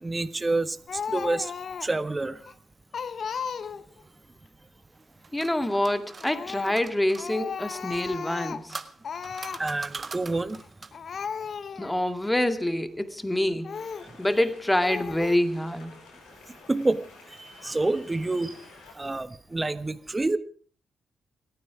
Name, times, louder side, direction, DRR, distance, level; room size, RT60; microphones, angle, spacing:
voice 1, 0.0-1.5 1.8-2.4 9.6-10.6 16.7-17.0 17.4-18.6 19.0-20.4, right 2 dB, 25° right, 1.3 m, -28 dB
Speech, 0.9-2.0 2.5-2.6 2.9-4.0 6.2-6.8 7.2-8.7 9.0-9.6 10.5-10.7 10.9-12.0 12.6-12.7 13.6-14.1 14.8-15.4, left 6 dB, 60° left, 0.8 m, -35 dB
sound 1, 5.0-7.3 8.2-11.1, right 4 dB, 40° right, 1.6 m, -42 dB
voice 2, 5.3-8.8 11.8-13.8 14.2-15.9, left 1 dB, 10° left, 2.1 m, -26 dB
sound 2, 13.7-18.9, left 4 dB, 85° left, 6.0 m, -51 dB
29.0 x 9.8 x 4.9 m
supercardioid pair, 50°, 0 cm